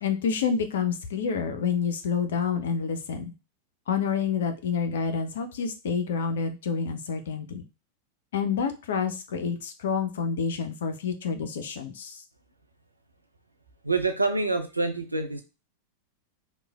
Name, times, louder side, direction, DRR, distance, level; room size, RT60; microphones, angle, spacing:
voice 1, 0.0-3.3 3.9-7.6 8.3-12.2, left 6 dB, 60° left, 8 dB, 0.4 m, -28 dB
voice 2, 13.8-15.4, right 3 dB, 85° right, 5 dB, 0.4 m, -26 dB
3.0 x 2.1 x 2.3 m, 0.28 s
figure-of-eight pair, 90°, 0 cm